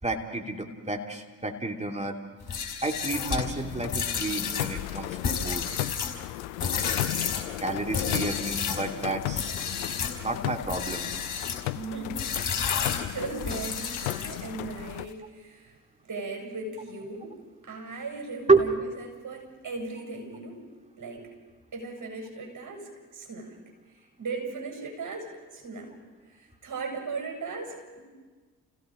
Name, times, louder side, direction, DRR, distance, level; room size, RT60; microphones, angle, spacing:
voice 1, 0.0-2.2 2.8-5.7 7.6-9.5 10.2-11.1 18.5-18.6, right 3 dB, 15° right, 2 dB, 3.3 m, -29 dB
sound 1, 2.4-8.9 9.3-10.2 10.6-11.6 12.1-14.6, left 6 dB, 55° left, 4.8 m, -31 dB
sound 2, 2.8-15.1, left 17 dB, 85° left, 0.5 m, -36 dB
voice 2, 11.7-12.2 12.7-15.8 16.0-17.4 17.6-20.6 21.0-21.3 21.7-23.6 23.9-26.0 26.3-28.0, right 3 dB, 50° right, 1 dB, 7.6 m, -38 dB
30.0 x 16.5 x 5.3 m, 1.4 s
hypercardioid pair, 45°, 39 cm